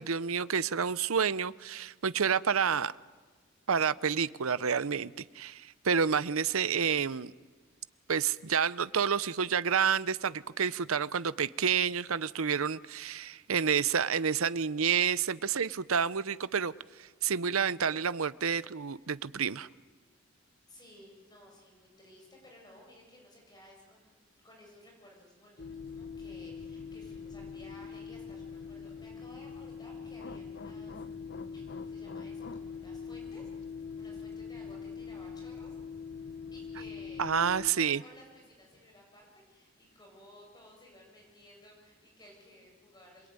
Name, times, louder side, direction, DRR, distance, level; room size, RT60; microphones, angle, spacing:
voice 1, 0.0-2.9 3.7-7.3 8.1-16.7 17.0-19.7 37.2-38.0, right 7 dB, 80° right, 0.7 m, -29 dB
voice 2, 20.6-24.2 24.4-31.0 31.5-35.8 36.5-43.3, left 1 dB, 20° left, 7.5 m, -56 dB
sound 1, 25.6-37.7, left 5 dB, 50° left, 0.9 m, -43 dB
27.0 x 22.0 x 9.6 m
head